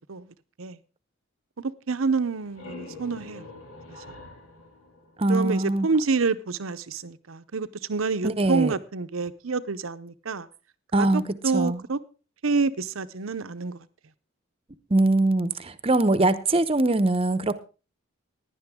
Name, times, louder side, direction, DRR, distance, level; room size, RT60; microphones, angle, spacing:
voice 1, 0.1-0.8 1.6-3.5 5.3-10.5 11.0-12.0 12.4-13.9, right 4 dB, 85° right, 0.8 m, -28 dB
sound 1, 2.2-5.8, left 2 dB, 80° left, 2.5 m, -45 dB
voice 2, 5.2-5.9 8.2-8.7 10.9-11.2 11.5-11.8 14.9-17.5, right 2 dB, 30° right, 0.8 m, -22 dB
16.0 x 10.5 x 3.7 m
head